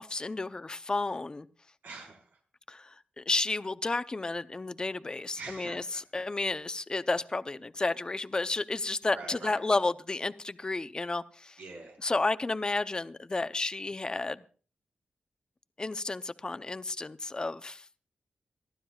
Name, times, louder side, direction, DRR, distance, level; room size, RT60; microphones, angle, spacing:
voice 1, 0.0-1.5 2.7-5.8 6.1-11.6 12.0-14.4 15.8-17.9, left 3 dB, 25° left, 0.7 m, -32 dB
voice 2, 1.8-2.4 5.3-6.0 9.1-9.6 11.6-12.0, right 3 dB, 90° right, 4.5 m, -44 dB
28.5 x 12.0 x 2.4 m
wide cardioid pair, 95°, 3 cm